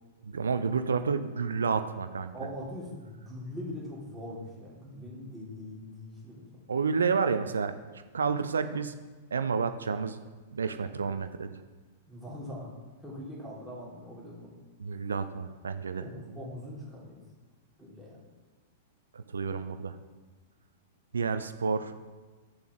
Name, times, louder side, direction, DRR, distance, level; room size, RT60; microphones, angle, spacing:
voice 1, 0.2-2.3 6.7-7.8 8.1-8.9 9.3-10.2 10.5-11.5 14.8-16.0 19.1-20.0 21.1-21.9, right 5 dB, 75° right, 10 dB, 0.4 m, -30 dB
voice 2, 2.3-6.6 12.1-12.7 13.0-14.5 16.0-17.2 17.8-18.3, left 1 dB, 5° right, -6 dB, 2.7 m, -42 dB
8.9 x 6.9 x 3.1 m, 1.3 s
figure-of-eight pair, 100°, 0 cm